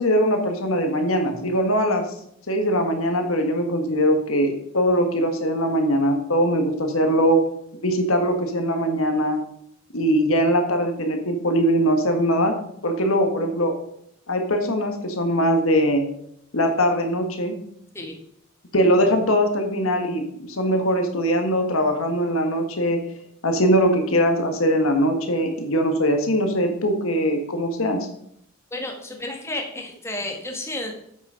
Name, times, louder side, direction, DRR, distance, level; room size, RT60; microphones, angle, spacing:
voice 1, 0.0-2.0 2.5-7.4 7.8-9.4 9.9-12.5 12.8-13.7 14.3-16.0 16.5-17.5 18.7-23.0 23.4-28.0, equal, 70° left, 5 dB, 1.5 m, -21 dB
voice 2, 28.7-30.9, left 2 dB, 10° left, 2 dB, 1.4 m, -31 dB
8.4 x 6.2 x 5.6 m, 0.71 s
head